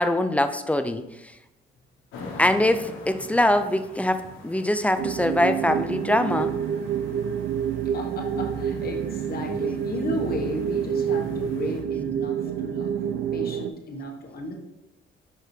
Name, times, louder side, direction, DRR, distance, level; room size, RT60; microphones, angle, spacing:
voice 1, 0.0-1.3 2.4-6.6, left 1 dB, 5° left, 9 dB, 0.4 m, -23 dB
sound 1, 2.1-11.8, left 2 dB, 90° left, 1.3 m, -43 dB
sound 2, 5.0-13.7, right 8 dB, 55° right, 0.5 m, -28 dB
voice 2, 7.9-12.9 13.3-14.5, left 1 dB, 50° left, 2 dB, 1.2 m, -34 dB
5.8 x 5.3 x 3.2 m, 0.95 s
cardioid pair, 90°, 20 cm